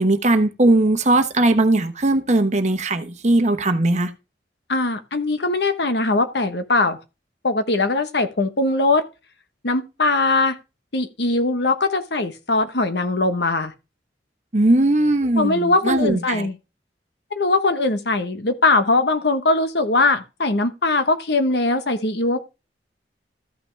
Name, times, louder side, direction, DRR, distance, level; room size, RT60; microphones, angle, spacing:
voice 1, 0.0-4.1 14.5-16.5, right 2 dB, 40° right, 1.1 m, -19 dB
voice 2, 4.7-7.0 7.4-9.0 9.6-10.6 10.9-13.7 15.4-16.6 17.3-22.4, left 2 dB, 70° left, 1.1 m, -21 dB
13.5 x 5.9 x 3.4 m
head